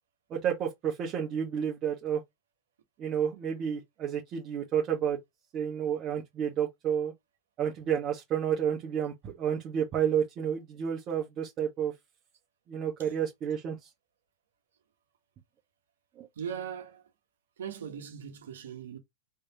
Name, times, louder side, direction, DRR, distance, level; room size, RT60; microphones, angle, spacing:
voice 1, 0.3-2.2 3.0-5.2 5.5-7.1 7.6-11.9 12.7-13.9 16.2-16.3, right 8 dB, 40° right, 1.2 m, -30 dB
voice 2, 16.4-17.0 17.6-19.0, right 8 dB, 80° right, 1.1 m, -39 dB
3.4 x 3.3 x 2.9 m
hypercardioid pair, 100°, 0 cm